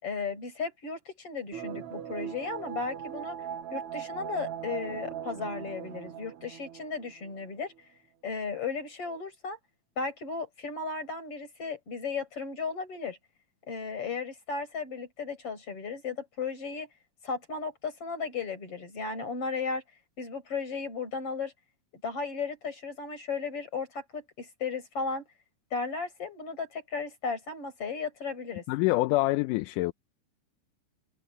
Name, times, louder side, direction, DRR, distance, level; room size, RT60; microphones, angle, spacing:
voice 1, 0.0-3.4 3.7-7.7 8.2-9.6 10.0-13.2 13.6-16.9 17.2-19.8 20.2-21.5 22.0-25.3 25.7-28.6, left 4 dB, 40° left, 7.2 m, -35 dB
sound 1, 1.5-7.4 7.8-7.9, right 9 dB, 55° right, 1.7 m, -39 dB
voice 2, 28.7-29.9, left 20 dB, 80° left, 2.1 m, -26 dB
omnidirectional pair, 3.8 m